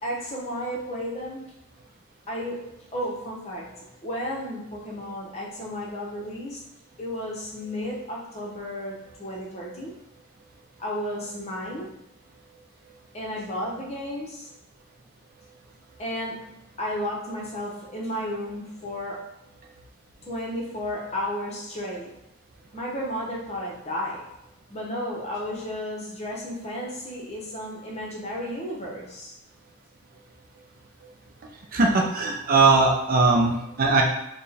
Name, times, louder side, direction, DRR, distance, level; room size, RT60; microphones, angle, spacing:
voice 1, 0.0-1.5 2.3-6.6 7.0-9.9 10.8-12.0 13.1-14.5 16.0-19.2 20.2-22.1 22.7-24.3 24.7-29.3, equal, 30° left, -3 dB, 0.8 m, -33 dB
voice 2, 31.7-34.0, right 3 dB, 40° right, 1 dB, 0.4 m, -20 dB
4.2 x 2.2 x 3.3 m, 0.85 s
head